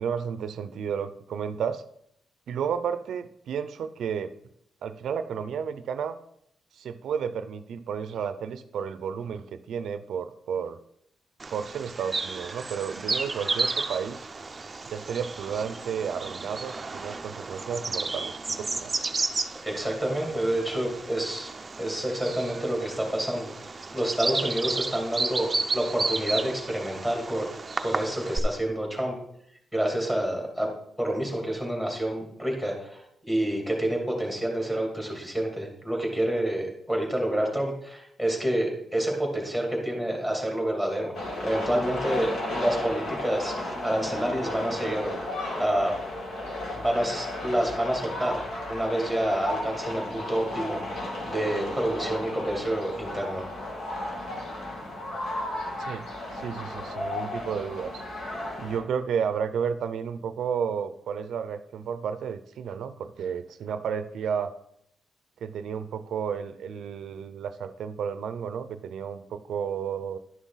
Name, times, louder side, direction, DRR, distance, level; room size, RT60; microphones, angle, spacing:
voice 1, 0.0-1.8 2.5-4.3 4.8-6.2 6.7-10.8 11.5-14.3 14.9-18.9 55.8-56.1 56.3-58.0 58.6-64.5 65.4-70.2, right 7 dB, 85° right, 11 dB, 0.5 m, -32 dB
Bird vocalization bird call bird song, 11.4-28.4, right 3 dB, 25° right, 0.5 m, -33 dB
voice 2, 19.6-21.5 21.7-27.5 27.8-29.1 29.7-30.7 31.0-41.1 41.4-45.9 46.7-53.4, right 1 dB, 10° left, 0 dB, 2.7 m, -28 dB
sound 1, 41.1-58.8, left 1 dB, 75° left, 2.6 m, -34 dB
11.0 x 6.1 x 4.0 m, 0.73 s
wide cardioid pair, 125°, 0 cm